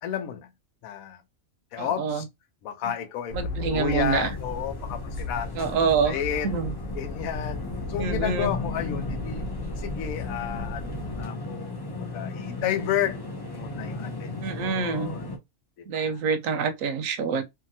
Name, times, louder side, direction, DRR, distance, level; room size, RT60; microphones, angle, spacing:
voice 1, 0.0-0.5 0.8-1.2 1.7-2.2 2.6-5.7 6.1-6.5 7.0-9.4 9.8-13.2 13.5-15.2 15.8-16.2, left 9 dB, 80° left, 1.0 m, -32 dB
voice 2, 1.8-2.2 2.8-2.9 3.3-4.3 5.5-6.2 6.4-6.7 8.0-8.6 14.4-15.1 15.9-17.4, right 5 dB, 75° right, 1.0 m, -26 dB
sound 1, 3.3-11.2, left 1 dB, 55° left, 0.9 m, -35 dB
sound 2, 4.0-15.4, left 3 dB, 35° left, 0.3 m, -36 dB
2.7 x 2.7 x 2.6 m
omnidirectional pair, 1.5 m